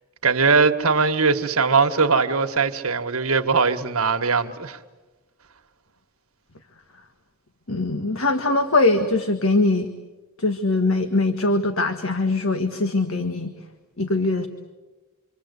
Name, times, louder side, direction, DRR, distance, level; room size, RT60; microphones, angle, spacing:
voice 1, 0.2-4.8, right 4 dB, 85° right, 1.6 m, -20 dB
voice 2, 7.7-9.9 10.4-13.5 14.0-14.5, left 2 dB, 70° left, 1.6 m, -22 dB
27.0 x 26.0 x 8.3 m
head